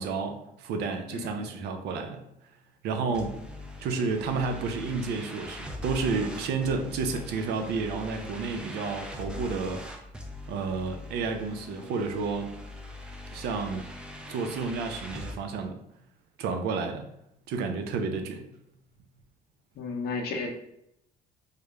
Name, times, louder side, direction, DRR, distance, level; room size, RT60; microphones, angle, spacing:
voice 1, 0.0-2.2 2.8-3.4 3.8-9.8 10.5-12.5 13.3-13.8 14.3-15.8 16.4-17.1 17.5-18.4, right 4 dB, 75° right, 5 dB, 0.5 m, -31 dB
voice 2, 1.1-1.4 19.8-20.5, left 4 dB, 65° left, 2 dB, 0.6 m, -33 dB
sound 1, 3.1-15.4, left 1 dB, 5° right, 0.3 m, -41 dB
2.3 x 2.0 x 2.9 m, 0.77 s
cardioid pair, 110°, 17 cm